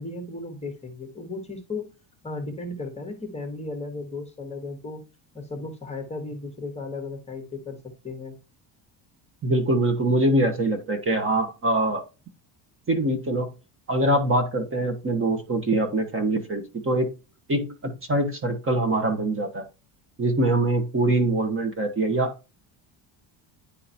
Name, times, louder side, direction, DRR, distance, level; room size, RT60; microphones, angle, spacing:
voice 1, 0.0-1.9 2.2-5.0 5.3-7.8 8.0-8.4, left 3 dB, 15° left, 4 dB, 1.2 m, -35 dB
voice 2, 9.4-12.0 12.9-13.5 13.9-17.1 17.5-19.6 20.2-22.3, right 1 dB, 25° right, 5 dB, 1.2 m, -23 dB
10.0 x 3.8 x 2.7 m, 0.29 s
cardioid pair, 170°, 49 cm